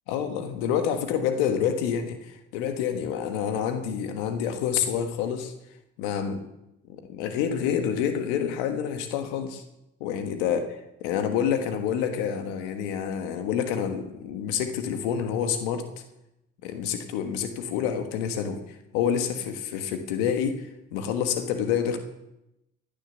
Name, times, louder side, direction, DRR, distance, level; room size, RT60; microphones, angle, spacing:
voice 1, 0.1-5.5 6.0-6.5 6.9-9.6 10.0-15.9 16.6-22.0, left 8 dB, 90° left, 7 dB, 1.5 m, -28 dB
15.5 x 10.5 x 6.8 m, 0.87 s
supercardioid pair, 60°, 31 cm